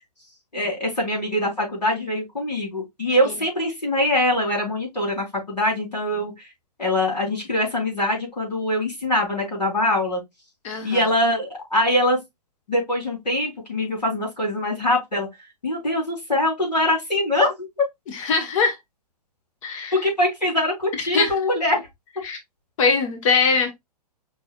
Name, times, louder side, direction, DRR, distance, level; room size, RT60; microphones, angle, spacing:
voice 1, 0.5-6.5 6.8-10.2 10.8-12.2 12.7-15.3 15.6-17.8 20.0-21.9, left 1 dB, 90° left, 3.8 m, -23 dB
voice 2, 10.6-11.0 18.1-18.8 19.6-19.9 21.1-21.3 22.2-22.4 22.8-23.7, left 4 dB, 50° left, 1.4 m, -22 dB
5.3 x 4.0 x 2.3 m
hypercardioid pair, 120°, 21 cm